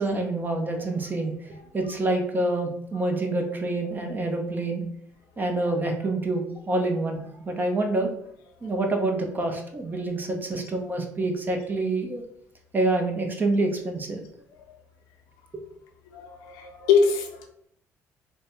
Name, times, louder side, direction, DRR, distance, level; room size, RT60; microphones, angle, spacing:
voice 1, 0.0-1.3 1.7-4.8 5.4-8.1 8.6-12.2 12.7-14.2 15.5-15.6, right 2 dB, 30° right, 3 dB, 0.8 m, -27 dB
voice 2, 16.1-17.5, left 5 dB, 85° left, 3 dB, 0.7 m, -23 dB
3.1 x 2.2 x 4.1 m, 0.70 s
supercardioid pair, 75°, 6 cm